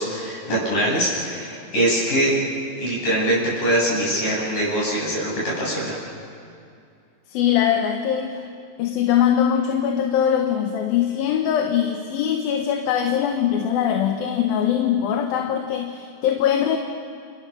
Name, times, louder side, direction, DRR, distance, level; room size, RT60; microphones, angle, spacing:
voice 1, 0.0-2.3 2.8-5.3 5.6-6.0, right 1 dB, 60° left, -6 dB, 9.4 m, -23 dB
voice 2, 7.3-8.4 8.8-16.8, left 9 dB, 80° left, 4 dB, 3.1 m, -22 dB
30.0 x 28.0 x 6.4 m, 2.4 s
omnidirectional pair, 4.1 m